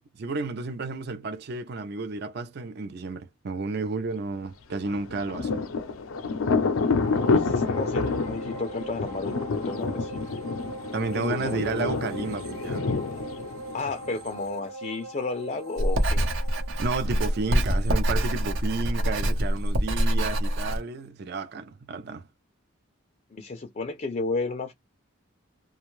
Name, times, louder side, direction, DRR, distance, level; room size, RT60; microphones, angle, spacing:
voice 1, 0.0-5.6 10.9-12.9 16.8-22.3, right 3 dB, 50° right, 0.4 m, -32 dB
Thunder, 4.8-14.3, left 4 dB, 90° left, 0.5 m, -28 dB
sound 1, 6.9-20.6 21.0-21.1, right 2 dB, 85° right, 1.1 m, -42 dB
voice 2, 7.0-10.4 11.1-11.6 13.7-16.5 23.3-24.7, left 3 dB, 35° left, 0.4 m, -33 dB
Writing, 15.8-20.8, equal, 70° right, 0.8 m, -25 dB
2.5 x 2.2 x 3.0 m
head